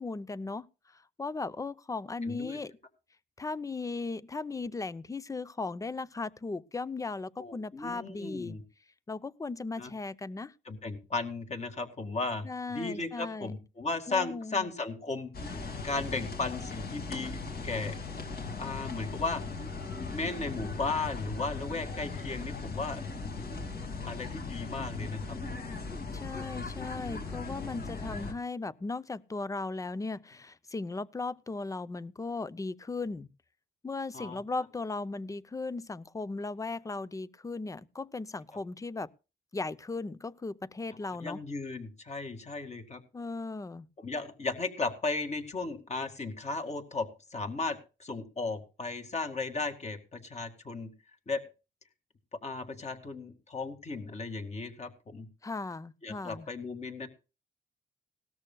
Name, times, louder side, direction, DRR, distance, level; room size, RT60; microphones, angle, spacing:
voice 1, 0.0-2.7 3.4-8.6 9.1-10.5 12.4-13.5 14.1-14.7 26.1-33.3 33.8-39.1 39.5-41.4 43.1-43.9 55.4-56.5, left 3 dB, 15° left, 0.6 m, -37 dB
voice 2, 2.3-2.6 7.4-8.6 9.8-9.9 10.7-18.0 18.6-19.4 20.0-23.0 24.0-25.4 34.1-34.4 41.1-43.0 44.0-50.9 51.3-51.4 52.4-55.3 56.0-57.1, left 3 dB, 35° left, 2.1 m, -35 dB
sound 1, 15.3-28.3, left 4 dB, 50° left, 2.3 m, -38 dB
18.0 x 13.5 x 2.3 m
cardioid pair, 90°, 20 cm